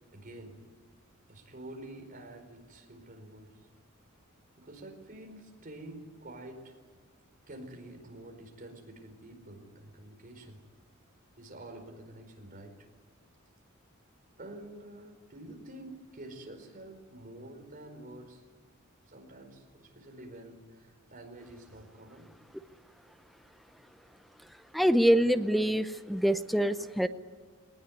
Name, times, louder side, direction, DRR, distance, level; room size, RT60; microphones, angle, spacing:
voice 1, 0.1-0.6 1.3-3.5 4.5-6.8 7.5-10.6 11.4-12.7 14.4-18.4 19.1-22.3, right 1 dB, 40° right, 4 dB, 4.7 m, -48 dB
voice 2, 24.7-27.1, equal, ahead, 11 dB, 0.7 m, -25 dB
20.5 x 19.5 x 9.5 m, 1.5 s
head